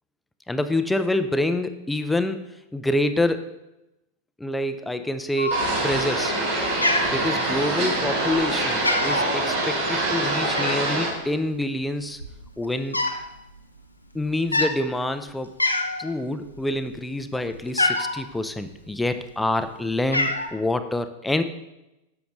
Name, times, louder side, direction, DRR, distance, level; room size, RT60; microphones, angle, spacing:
voice 1, 0.5-2.4 2.7-3.5 4.4-6.3 7.1-12.2 12.6-13.0 14.1-15.5 16.0-21.4, left 1 dB, 5° left, 10 dB, 0.5 m, -26 dB
Cat, 5.4-6.0 6.3-6.6 6.8-7.8 8.3-8.5 8.7-9.3 10.5-11.0 11.8-11.9 12.1-13.2 13.5-13.8 14.4-14.7 15.2-15.3 15.6-16.1 16.5-18.2 19.0-19.6 19.8-20.5, left 1 dB, 85° left, 0.7 m, -25 dB
sound 1, 5.5-11.1, right 2 dB, 55° right, 2.8 m, -25 dB
10.0 x 7.0 x 3.1 m, 0.93 s
figure-of-eight pair, 90°, 0 cm